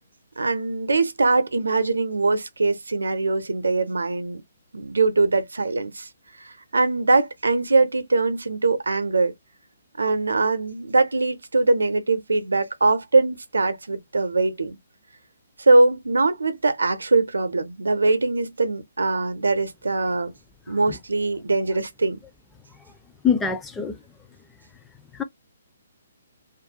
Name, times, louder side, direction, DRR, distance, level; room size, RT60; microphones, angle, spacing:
voice 1, 0.4-4.4 4.7-6.1 6.7-9.3 10.0-14.8 15.6-20.3 20.7-22.2, right 3 dB, 80° right, 0.6 m, -22 dB
voice 2, 23.2-24.0 25.1-25.2, left 7 dB, 10° left, 0.4 m, -24 dB
2.5 x 2.2 x 2.7 m
figure-of-eight pair, 135°, 0 cm